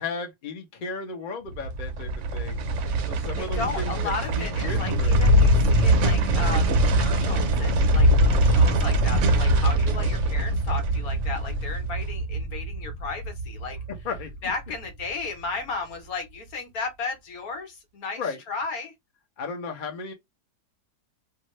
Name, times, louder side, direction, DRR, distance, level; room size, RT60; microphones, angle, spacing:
voice 1, 0.0-2.6 3.1-5.2 14.0-14.5 18.2-18.4 19.4-20.1, left 4 dB, 45° left, 0.7 m, -35 dB
sound 1, 1.5-14.7 15.0-15.1, right 1 dB, 65° right, 0.8 m, -22 dB
voice 2, 3.4-13.8 14.4-18.9, left 4 dB, 70° left, 1.3 m, -34 dB
2.7 x 2.4 x 2.9 m
omnidirectional pair, 1.7 m